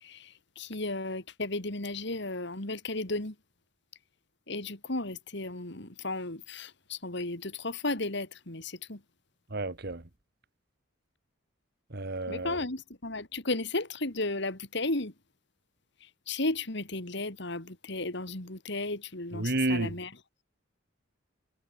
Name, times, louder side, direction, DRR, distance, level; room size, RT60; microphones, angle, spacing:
voice 1, 0.0-3.3 4.5-9.0 12.3-15.1 16.3-20.1, left 2 dB, 60° left, 3.0 m, -34 dB
voice 2, 9.5-10.0 11.9-12.6 19.3-20.0, right 2 dB, 55° right, 1.7 m, -30 dB
head